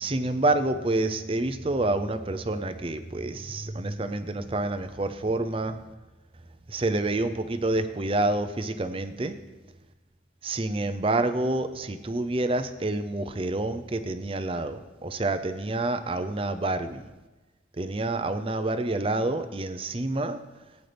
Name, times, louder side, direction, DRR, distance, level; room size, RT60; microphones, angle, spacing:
voice 1, 0.0-5.8 6.7-9.4 10.4-17.0 17.8-20.4, right 2 dB, 30° right, 10 dB, 0.6 m, -28 dB
18.0 x 9.4 x 3.4 m, 1.2 s
head